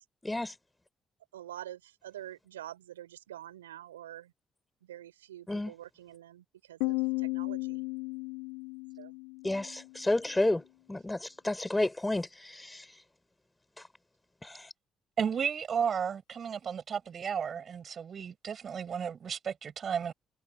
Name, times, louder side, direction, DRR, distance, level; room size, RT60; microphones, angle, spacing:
voice 1, 0.2-0.5 5.5-5.7 9.4-10.6 10.9-12.9 14.4-14.7, left 2 dB, 15° left, 4.8 m, -31 dB
voice 2, 1.3-4.3 4.9-7.0 7.3-7.8 9.0-9.1, right 12 dB, 85° right, 3.9 m, -46 dB
Piano, 6.8-10.2, left 27 dB, 75° left, 2.4 m, -35 dB
voice 3, 15.2-20.1, right 7 dB, 50° right, 5.8 m, -33 dB
figure-of-eight pair, 40°, 0 cm